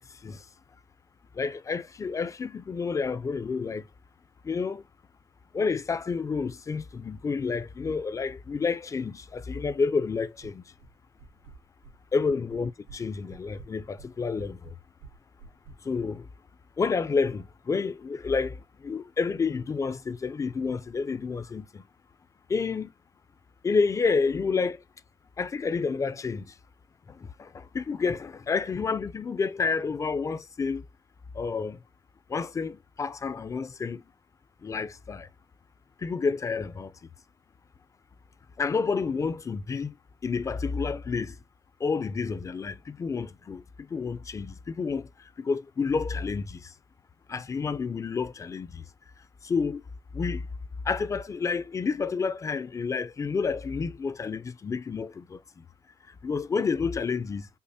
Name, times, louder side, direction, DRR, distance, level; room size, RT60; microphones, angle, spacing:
voice 1, 0.1-0.5 1.3-3.9 4.4-4.8 5.5-10.6 12.1-14.7 15.8-16.3 16.8-21.8 22.5-22.9 23.6-24.8 25.4-26.5 27.1-30.8 31.3-31.8 32.3-34.0 34.6-35.3 36.0-36.9 38.6-40.0 40.2-41.4 41.8-46.7 47.3-48.8 49.4-49.8 50.1-50.4 50.8-55.4 56.1-57.5, left 5 dB, 25° left, 0.4 m, -29 dB
sound 1, 10.4-10.9 11.2-12.0 12.2-13.0 13.3-15.8, right 4 dB, 80° right, 2.2 m, -49 dB
5.4 x 2.1 x 2.7 m
cardioid pair, 90°, 12 cm